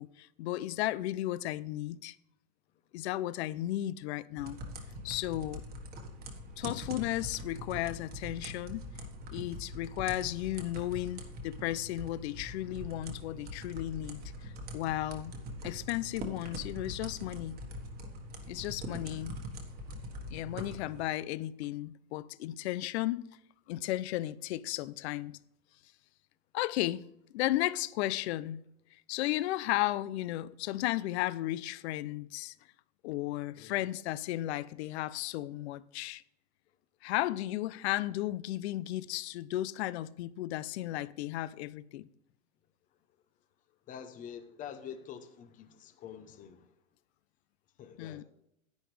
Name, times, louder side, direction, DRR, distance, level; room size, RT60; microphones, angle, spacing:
voice 1, 0.0-2.2 2.9-4.6 5.0-5.6 6.6-8.9 9.3-15.3 15.6-17.6 18.5-19.4 20.3-23.3 23.7-25.3 26.5-27.0 27.3-28.6 29.1-32.5 33.0-36.2 37.0-42.1 48.0-48.2, left 15 dB, 50° left, 0.6 m, -34 dB
sound 1, 4.4-21.0, equal, 20° right, 1.5 m, -43 dB
voice 2, 43.9-46.7 47.8-48.2, left 8 dB, 20° left, 0.8 m, -46 dB
10.5 x 9.2 x 3.3 m
supercardioid pair, 145°, 42 cm